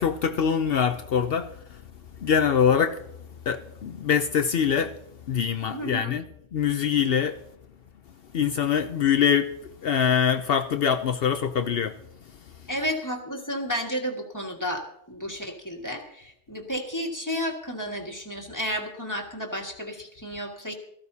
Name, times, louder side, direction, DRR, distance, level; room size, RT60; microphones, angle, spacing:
voice 1, 0.0-1.5 2.2-3.0 3.5-4.9 5.3-6.2 6.5-7.4 8.3-9.5 9.8-11.9, left 7 dB, 60° left, 0.8 m, -23 dB
voice 2, 5.7-6.2 12.7-20.7, equal, 15° left, 1.8 m, -32 dB
18.0 x 14.5 x 2.8 m
omnidirectional pair, 1.2 m